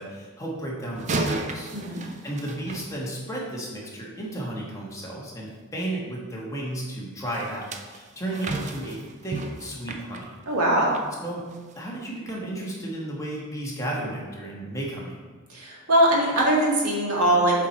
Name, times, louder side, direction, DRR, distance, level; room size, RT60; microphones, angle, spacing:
voice 1, 0.0-10.3 11.2-11.4 11.7-15.2, right 1 dB, 15° left, -4 dB, 1.3 m, -33 dB
sound 1, 0.9-3.5 7.3-11.1 11.5-11.7 12.3-12.4, right 2 dB, 35° right, 0.5 m, -34 dB
voice 2, 10.5-11.0 15.5-17.7, right 1 dB, 85° right, -3 dB, 1.9 m, -21 dB
7.3 x 4.4 x 4.3 m, 1.4 s
head